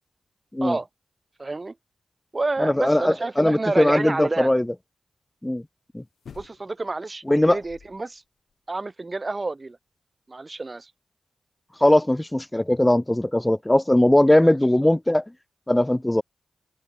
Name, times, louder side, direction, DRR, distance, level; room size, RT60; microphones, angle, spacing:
voice 1, 1.4-1.7 2.3-4.5 6.3-8.2 8.7-9.8 10.3-10.9 14.4-14.5, right 3 dB, 35° right, 0.6 m, -29 dB
voice 2, 2.6-4.7 5.4-5.6 5.9-6.0 7.3-7.6 11.8-15.2 15.7-16.2, left 1 dB, 15° left, 0.4 m, -19 dB
sound 1, 6.2-6.9 7.4-8.2 8.5-8.6, left 7 dB, 75° left, 6.8 m, -47 dB
open air
cardioid pair, 45°, 0 cm